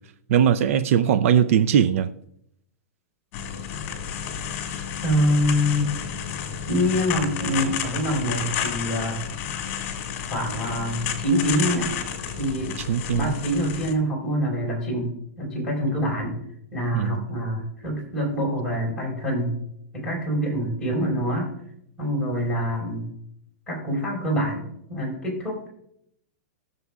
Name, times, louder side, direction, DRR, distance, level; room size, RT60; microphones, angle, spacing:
voice 1, 0.3-2.1 12.9-13.4 16.9-17.3, right 8 dB, 60° right, 11 dB, 0.5 m, -20 dB
sound 1, 3.3-13.9, left 8 dB, 45° left, 2.0 m, -31 dB
voice 2, 5.0-5.9 6.7-9.2 10.3-11.9 12.4-12.8 13.1-15.1 15.4-16.4 16.7-19.5 19.9-21.5 22.0-23.1 23.7-25.7, equal, 10° left, -5 dB, 4.7 m, -25 dB
20.5 x 7.0 x 2.4 m, 0.74 s
hypercardioid pair, 150°, 8 cm